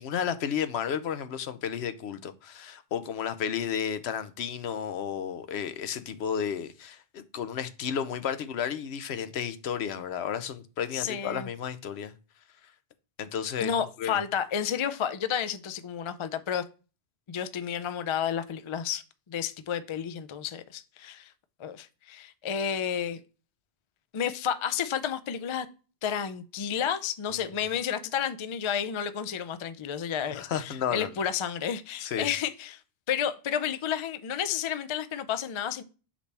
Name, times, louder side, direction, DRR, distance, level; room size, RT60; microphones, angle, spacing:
voice 1, 0.0-12.1 13.2-14.2 30.3-31.1 32.0-32.3, left 8 dB, 75° left, 0.9 m, -32 dB
voice 2, 10.9-11.5 13.6-16.6 17.3-21.3 21.6-23.2 24.1-25.7 26.0-32.8 33.1-35.8, left 8 dB, 55° left, 0.3 m, -31 dB
6.7 x 5.0 x 3.3 m
omnidirectional pair, 1.1 m